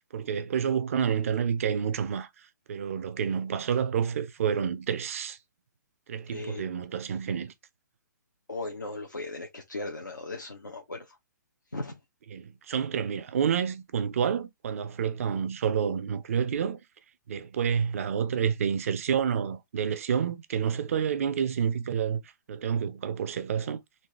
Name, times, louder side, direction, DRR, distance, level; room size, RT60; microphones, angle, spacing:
voice 1, 0.1-2.3 2.7-5.4 6.1-7.5 12.3-16.8 17.3-22.2 22.5-23.8, right 7 dB, 45° right, 0.7 m, -29 dB
voice 2, 6.3-6.6 8.5-11.2 11.7-12.0, left 2 dB, 75° left, 1.2 m, -37 dB
4.2 x 2.8 x 3.2 m
figure-of-eight pair, 130°, 10 cm